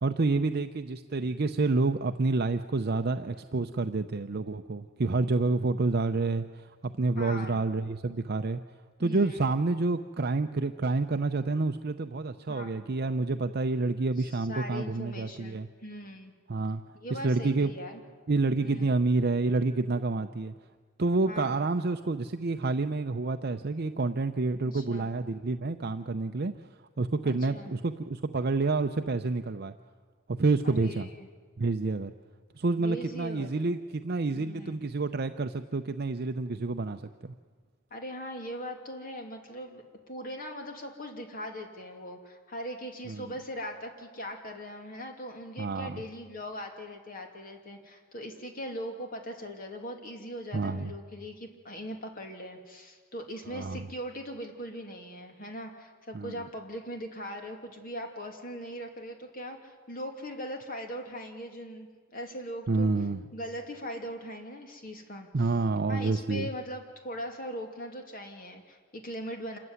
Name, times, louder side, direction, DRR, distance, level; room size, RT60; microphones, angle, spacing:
voice 1, 0.0-8.6 9.0-15.7 16.5-16.8 17.2-17.7 18.3-20.5 21.0-26.5 27.0-29.7 30.3-31.1 31.6-32.1 32.6-37.3 43.1-43.3 45.6-46.0 50.5-50.9 53.5-53.9 56.1-56.5 62.7-63.2 65.3-66.5, right 3 dB, 50° right, 8 dB, 0.6 m, -28 dB
voice 2, 7.1-7.6 9.0-9.5 12.5-12.8 14.2-16.3 16.9-18.0 18.6-18.9 21.3-21.7 24.6-25.1 27.2-27.7 30.6-31.3 32.8-33.8 34.3-34.9 37.9-62.9 63.3-65.5 65.9-69.6, equal, 45° left, 3 dB, 2.7 m, -40 dB
27.0 x 13.5 x 9.6 m, 1.5 s
head